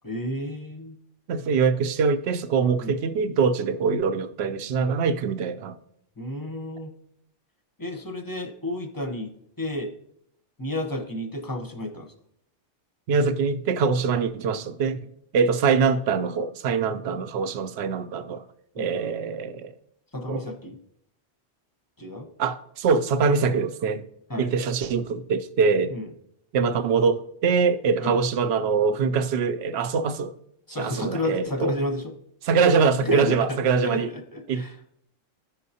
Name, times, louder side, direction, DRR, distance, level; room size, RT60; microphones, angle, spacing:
voice 1, 0.0-1.0 2.8-3.0 6.2-6.9 7.8-9.9 10.6-12.1 18.8-18.9 20.1-20.8 22.0-22.3 24.3-24.5 25.9-26.1 28.0-28.2 30.7-32.0 33.0-34.8, left 1 dB, 25° left, 0.6 m, -31 dB
voice 2, 1.3-5.8 13.1-15.0 15.3-18.4 18.8-19.7 20.3-20.4 22.4-24.1 24.4-25.9 26.5-30.3 30.7-31.7 32.4-34.1 34.5-34.6, right 5 dB, 65° right, 0.8 m, -23 dB
14.0 x 5.7 x 2.8 m
omnidirectional pair, 1.3 m